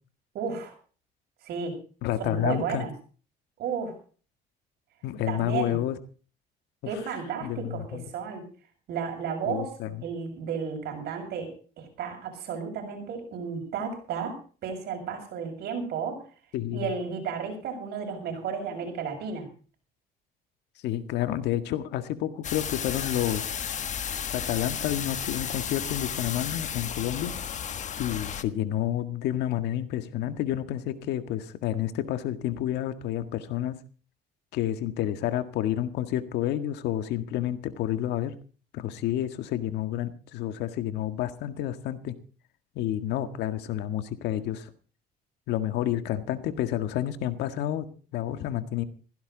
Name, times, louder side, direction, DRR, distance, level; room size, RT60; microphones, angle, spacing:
voice 1, 0.3-0.7 1.4-1.8 2.2-2.9 3.6-3.9 5.3-5.8 6.8-8.4 8.9-16.2 16.7-19.5, right 6 dB, 70° right, 4 dB, 6.9 m, -33 dB
voice 2, 2.0-2.8 5.0-6.0 6.8-6.9 7.4-8.0 9.4-9.9 16.5-16.9 20.8-23.5 24.3-27.3 28.0-33.8 34.5-38.3 38.7-42.1 42.7-44.7 45.5-48.8, left 12 dB, 85° left, 10 dB, 1.8 m, -29 dB
sound 1, 22.4-28.4, left 8 dB, 45° left, 1.3 m, -33 dB
16.0 x 16.0 x 4.0 m, 0.39 s
cardioid pair, 110°, 17 cm